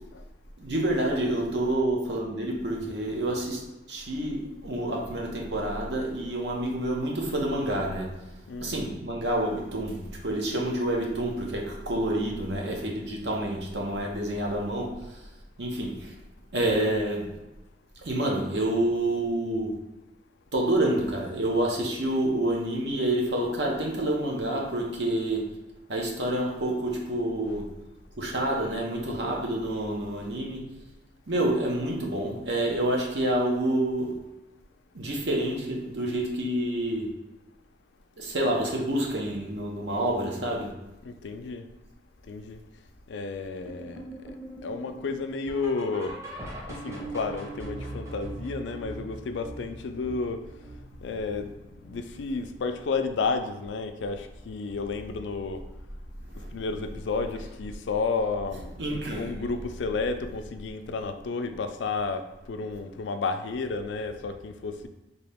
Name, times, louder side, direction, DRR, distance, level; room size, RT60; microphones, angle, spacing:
voice 1, 0.6-8.1 8.6-15.2 15.6-16.1 16.5-17.3 18.0-19.7 20.5-25.5 25.9-27.7 28.2-30.6 31.3-34.2 34.9-37.1 38.2-40.7 56.3-56.6 58.8-59.3, right 1 dB, 70° right, -1 dB, 0.9 m, -28 dB
voice 2, 8.5-8.8 41.0-41.6 42.3-42.6 43.1-44.0 44.6-46.2 46.7-50.4 51.0-51.5 51.8-55.6 56.5-64.9, left 4 dB, 85° left, 8 dB, 0.4 m, -32 dB
sound 1, 43.6-52.8 53.1-53.4 53.7-53.8 54.3-54.4 54.9-55.0, right 1 dB, 15° right, 0.8 m, -41 dB
3.9 x 2.8 x 3.4 m, 0.99 s
head